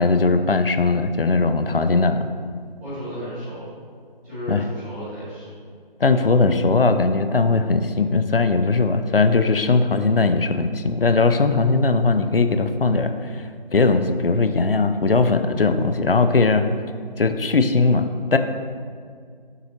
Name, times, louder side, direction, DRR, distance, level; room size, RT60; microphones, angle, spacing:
voice 1, 0.0-2.3 4.5-4.7 6.0-13.5 13.7-16.7 17.2-18.4, left 3 dB, 70° left, 9 dB, 0.6 m, -19 dB
voice 2, 2.8-3.7 4.2-5.5, equal, 10° right, -18 dB, 2.0 m, -33 dB
9.0 x 6.8 x 2.9 m, 2.1 s
figure-of-eight pair, 160°, 29 cm